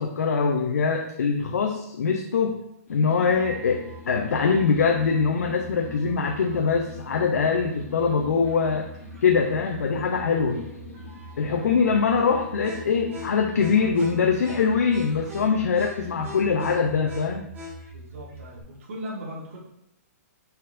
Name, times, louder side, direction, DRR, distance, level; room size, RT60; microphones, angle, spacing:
voice 1, 0.0-2.6 2.9-8.9 9.2-10.6 11.4-17.5, left 5 dB, 90° left, 2 dB, 0.5 m, -23 dB
sound 1, 2.9-16.8, left 4 dB, 65° left, 0.9 m, -46 dB
sound 2, 3.3-18.6, right 1 dB, 20° right, 1.1 m, -42 dB
voice 2, 10.6-11.0 11.5-12.1 17.9-19.6, equal, 60° right, -3 dB, 1.2 m, -39 dB
4.0 x 4.0 x 2.5 m, 0.80 s
hypercardioid pair, 145°, 8 cm